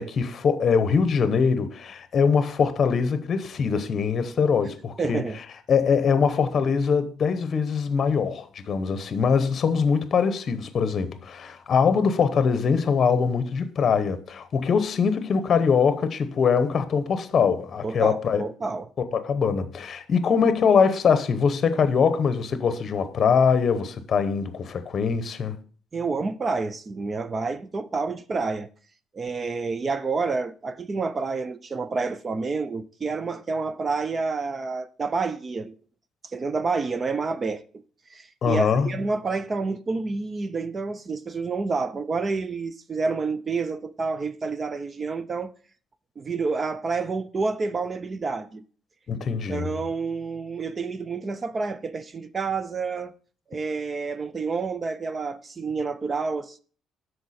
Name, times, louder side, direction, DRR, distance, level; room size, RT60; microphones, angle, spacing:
voice 1, 0.0-5.2 5.7-18.4 19.1-25.6 38.4-38.9 49.1-49.7, left 6 dB, 35° left, 0.8 m, -22 dB
voice 2, 5.0-5.4 17.8-18.9 25.9-28.7 29.1-35.8 36.2-37.8 38.1-45.5 46.2-48.6 49.5-53.1 53.5-56.6, right 4 dB, 20° right, 0.4 m, -29 dB
12.5 x 4.7 x 4.2 m
cardioid pair, 170°, 0 cm